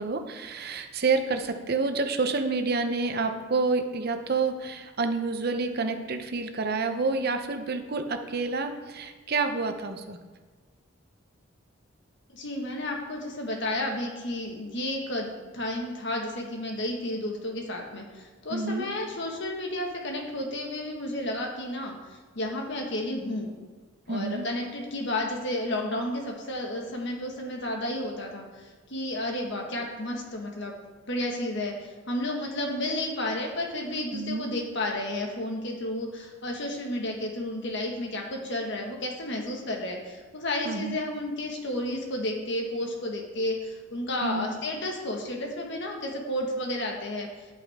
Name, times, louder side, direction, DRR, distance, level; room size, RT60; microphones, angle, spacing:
voice 1, 0.0-10.2 18.5-18.9 24.1-24.5 34.1-34.4 40.6-41.0 44.2-44.5, right 3 dB, 50° right, 7 dB, 0.8 m, -28 dB
voice 2, 12.3-22.0 22.3-23.5 24.1-30.7 31.0-47.5, left 1 dB, 60° left, 1 dB, 1.6 m, -32 dB
10.0 x 8.7 x 3.6 m, 1.4 s
head